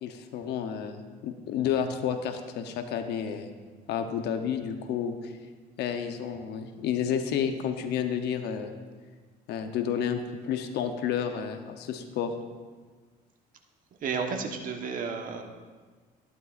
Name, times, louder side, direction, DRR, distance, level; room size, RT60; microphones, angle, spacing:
voice 1, 0.0-3.5 3.9-5.3 5.8-8.7 9.5-12.3, left 8 dB, 80° left, 7 dB, 0.8 m, -31 dB
voice 2, 14.0-15.4, right 5 dB, 55° right, 3 dB, 1.2 m, -32 dB
12.0 x 11.0 x 2.5 m, 1.5 s
cardioid pair, 110°, 17 cm